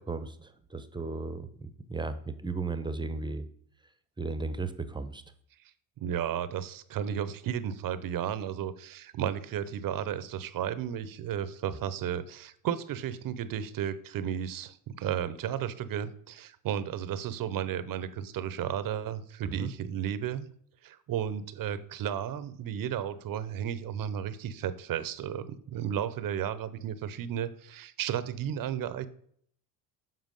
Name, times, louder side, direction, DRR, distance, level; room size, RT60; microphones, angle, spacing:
voice 1, 0.0-3.4 4.2-5.2 19.4-19.7, right 3 dB, 10° right, 11 dB, 0.8 m, -35 dB
voice 2, 6.0-20.5 20.8-29.1, right 9 dB, 55° right, 14 dB, 0.8 m, -33 dB
7.6 x 5.6 x 5.3 m, 0.64 s
supercardioid pair, 90°, 41 cm